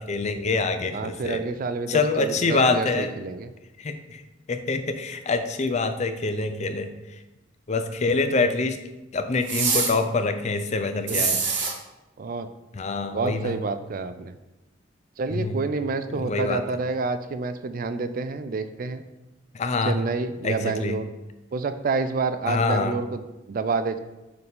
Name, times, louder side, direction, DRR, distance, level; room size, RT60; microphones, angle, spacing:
voice 1, 0.0-1.4 1.9-3.1 3.8-4.2 4.5-6.9 7.7-8.8 9.1-11.4 12.7-13.6 15.3-15.6 16.1-16.6 19.5-20.0 20.4-21.0 22.5-22.9, left 3 dB, 35° left, 8 dB, 0.4 m, -25 dB
voice 2, 0.9-3.5 11.0-11.4 12.2-12.5 13.1-14.3 15.2-19.0 19.8-21.1 21.5-24.0, right 4 dB, 45° right, 11 dB, 0.4 m, -28 dB
sound 1, 9.5-9.9 11.1-11.7, right 5 dB, 65° right, 1.2 m, -24 dB
6.7 x 4.0 x 3.5 m, 1.0 s
head